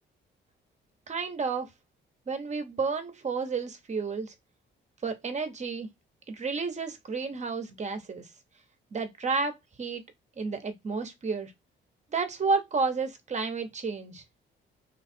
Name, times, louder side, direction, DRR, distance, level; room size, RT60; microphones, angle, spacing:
voice 1, 1.1-1.7 2.3-4.3 5.0-5.9 6.3-8.3 8.9-9.5 9.8-10.0 10.4-11.5 12.1-14.2, right 4 dB, 35° right, 0.9 m, -31 dB
3.2 x 2.4 x 4.2 m
cardioid pair, 90°, 20 cm